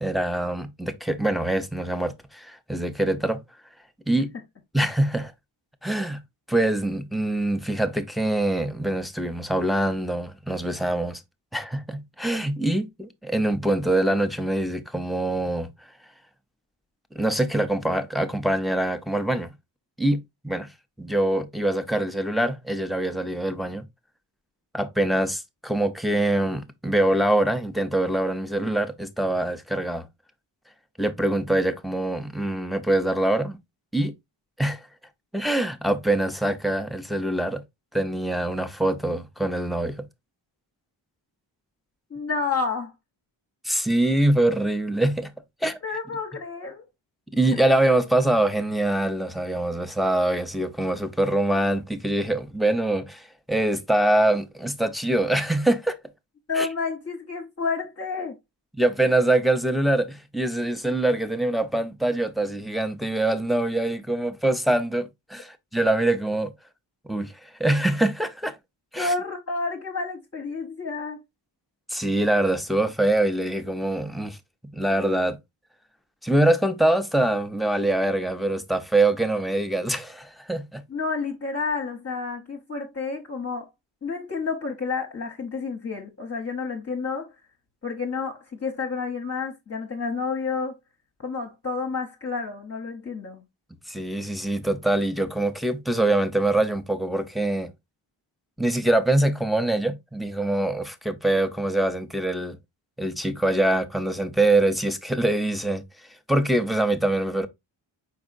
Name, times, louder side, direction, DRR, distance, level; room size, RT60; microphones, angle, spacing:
voice 1, 0.0-3.4 4.1-4.3 4.7-5.3 5.8-6.2 6.5-11.2 11.5-15.7 17.1-19.5 20.0-20.7 21.0-23.9 24.7-30.1 31.0-33.6 33.9-34.1 34.6-34.8 35.3-37.6 37.9-40.1 43.6-45.3 45.6-45.8 47.3-56.0 56.5-56.7 58.8-66.5 67.1-68.5 68.9-69.1 71.9-74.4 74.7-75.4 76.2-80.8 93.9-97.7 98.6-102.6 103.0-105.8 106.3-107.5, right 1 dB, ahead, 0.5 m, -24 dB
voice 2, 42.1-42.9 45.8-46.9 56.5-58.4 69.0-71.2 80.9-83.7 84.0-87.3 87.8-90.8 91.2-93.4, left 4 dB, 30° left, 0.8 m, -30 dB
4.8 x 4.5 x 2.4 m
cardioid pair, 85°, 48 cm